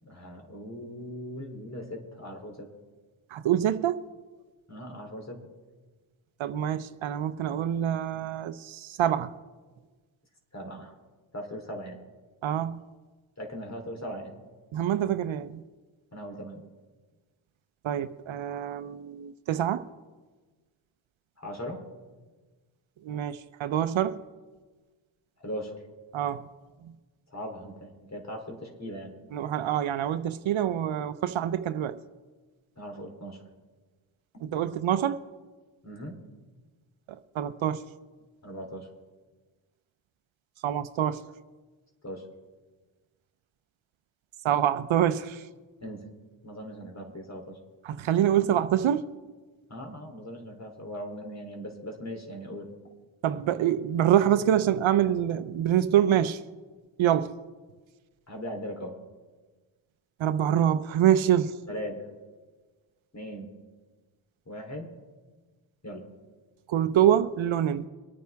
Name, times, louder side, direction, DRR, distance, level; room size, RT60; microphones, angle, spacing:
voice 1, 0.0-2.7 4.7-5.4 10.5-11.0 11.3-12.0 13.4-14.3 16.1-16.6 21.4-21.8 25.4-25.8 27.3-29.1 32.8-33.4 34.3-34.4 35.8-36.2 38.4-38.9 42.0-42.3 45.8-46.1 46.4-47.6 49.7-52.7 58.3-59.0 61.7-62.1 63.1-63.5 64.4-64.9 65.8-66.1, equal, 35° left, 3.3 m, -39 dB
voice 2, 3.3-4.0 6.4-9.3 12.4-12.8 14.7-15.6 17.8-19.9 23.0-24.2 26.1-26.5 26.8-26.9 29.3-32.0 34.4-35.2 37.1-37.8 40.6-41.2 44.4-45.5 47.8-49.1 53.2-56.4 57.0-57.3 60.2-61.5 66.7-67.9, right 10 dB, 70° right, 0.7 m, -26 dB
24.0 x 9.3 x 3.5 m
cardioid pair, 55°, 49 cm